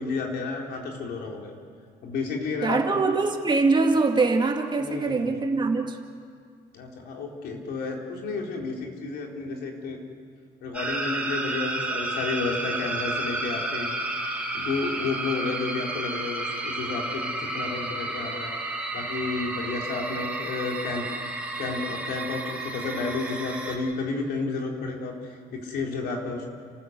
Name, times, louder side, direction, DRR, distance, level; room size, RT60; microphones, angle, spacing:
voice 1, 0.0-1.5 2.0-3.0 4.8-5.3 6.7-10.0 10.6-13.9 14.5-18.5 18.9-21.0 21.6-26.5, left 4 dB, 70° left, 0 dB, 4.0 m, -31 dB
voice 2, 2.6-6.0, right 3 dB, 25° right, 4 dB, 2.1 m, -23 dB
sound 1, 10.7-23.8, right 2 dB, 10° right, 5.2 m, -31 dB
30.0 x 14.0 x 8.0 m, 2.1 s
cardioid pair, 110°, 17 cm